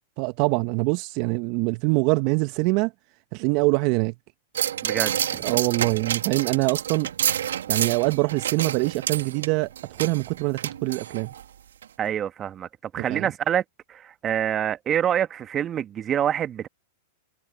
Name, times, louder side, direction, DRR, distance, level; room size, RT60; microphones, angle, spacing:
voice 1, 0.2-2.9 3.3-4.1 5.4-7.1 7.7-11.3 13.1-13.3, right 26 dB, 50° right, 0.8 m, -24 dB
sound 1, 4.5-11.4 11.8-11.9, right 9 dB, 80° right, 1.8 m, -29 dB
voice 2, 4.8-5.4 12.0-12.7 12.9-13.6 13.9-16.7, right 9 dB, 30° right, 1.6 m, -26 dB
hypercardioid pair, 110°, 0 cm